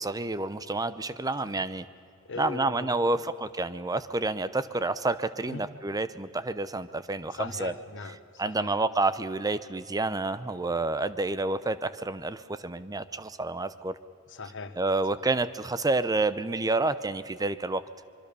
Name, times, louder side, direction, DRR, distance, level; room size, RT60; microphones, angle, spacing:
voice 1, 0.0-1.9 2.4-7.7 8.4-14.0 14.8-17.8, right 2 dB, 15° right, 14 dB, 0.7 m, -29 dB
voice 2, 1.4-1.7 2.2-3.2 5.4-5.7 7.3-8.7 14.3-14.8, left 3 dB, 60° left, 9 dB, 1.3 m, -40 dB
25.0 x 23.0 x 6.9 m, 2.5 s
head